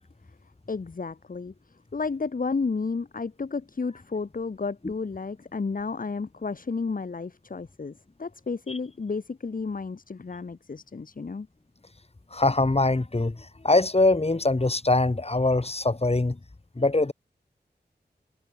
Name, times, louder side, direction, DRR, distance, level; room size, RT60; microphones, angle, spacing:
voice 1, 0.7-1.5 1.9-11.5, left 4 dB, 50° left, 1.2 m, -32 dB
voice 2, 12.3-16.4 16.8-17.1, left 2 dB, 35° left, 3.2 m, -23 dB
cardioid pair, 40°, 18 cm